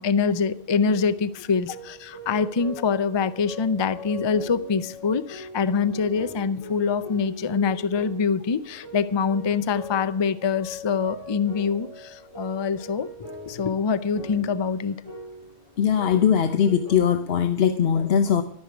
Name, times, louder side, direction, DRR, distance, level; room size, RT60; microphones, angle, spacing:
voice 1, 0.0-13.1 13.5-15.0, left 5 dB, 35° left, 13 dB, 0.5 m, -25 dB
sound 1, 0.8-16.9, left 1 dB, 85° left, 7.6 m, -41 dB
voice 2, 15.8-18.4, left 8 dB, 70° left, 8 dB, 1.0 m, -20 dB
14.0 x 6.5 x 9.4 m, 0.67 s
omnidirectional pair, 1.1 m